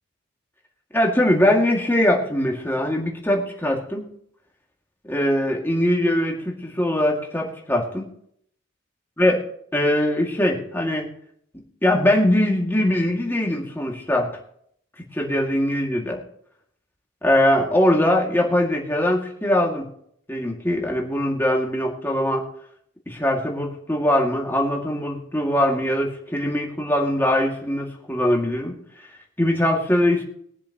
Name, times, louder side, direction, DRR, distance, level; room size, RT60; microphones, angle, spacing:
voice 1, 0.9-4.0 5.0-8.0 9.2-9.4 9.7-11.1 11.8-14.3 15.1-16.2 17.2-19.9 20.3-22.5 23.1-28.8 29.4-30.2, left 1 dB, 10° left, -1 dB, 2.2 m, -21 dB
22.0 x 7.6 x 3.0 m, 0.67 s
head